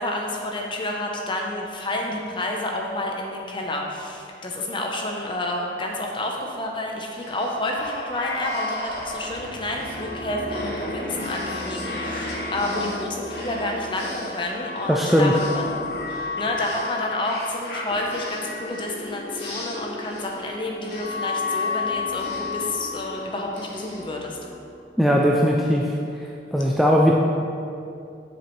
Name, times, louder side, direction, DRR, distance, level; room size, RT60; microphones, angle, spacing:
voice 1, 0.0-15.8 16.4-24.4, left 1 dB, 30° left, 0 dB, 0.8 m, -29 dB
sound 1, 7.2-24.8, left 3 dB, 60° left, 1.3 m, -32 dB
voice 2, 14.9-15.3 25.0-25.9 26.5-27.1, equal, ahead, -3 dB, 0.3 m, -18 dB
7.7 x 6.6 x 3.2 m, 2.6 s
head